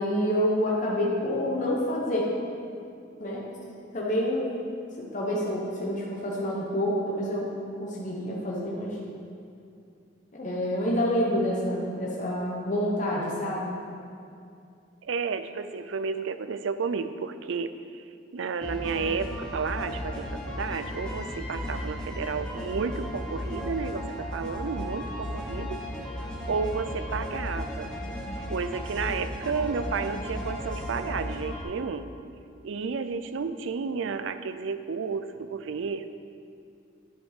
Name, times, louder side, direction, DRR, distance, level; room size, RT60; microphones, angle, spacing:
voice 1, 0.0-2.3 3.2-3.4 3.9-4.5 5.0-7.5 7.8-9.0 10.4-13.7, equal, 40° left, -4 dB, 1.1 m, -27 dB
voice 2, 15.0-17.8 18.3-25.9 26.5-27.9 28.5-32.1 32.6-36.1, right 5 dB, 80° right, 11 dB, 0.4 m, -32 dB
sound 1, 18.6-31.6, equal, 5° left, 1.1 m, -35 dB
11.0 x 5.2 x 5.1 m, 2.4 s
head